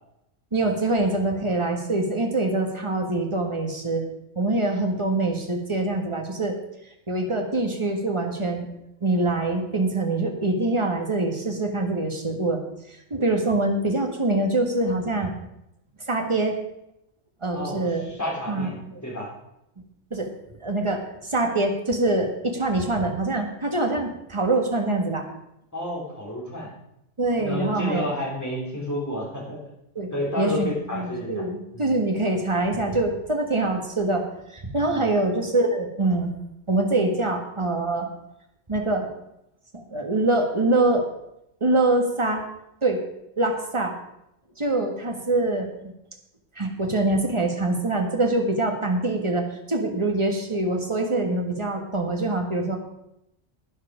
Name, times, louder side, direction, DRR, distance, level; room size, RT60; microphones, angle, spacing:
voice 1, 0.5-4.1 4.3-6.6 7.1-8.7 9.0-12.6 13.1-15.3 16.1-16.6 17.4-18.0 18.5-18.7 20.1-20.3 20.6-25.2 27.2-28.1 29.9-30.1 30.4-34.2 34.5-36.4 36.7-38.1 38.7-39.1 39.7-41.1 41.6-42.4 42.8-43.0 43.4-44.0 44.6-45.9 46.5-52.8, right 2 dB, 25° right, 3 dB, 1.6 m, -24 dB
voice 2, 17.5-18.8 19.0-19.3 25.7-26.7 27.4-29.6 30.1-31.5 31.7-31.9 34.8-35.1, left 1 dB, 15° left, -4 dB, 3.4 m, -31 dB
11.5 x 9.8 x 5.0 m, 0.83 s
omnidirectional pair, 1.3 m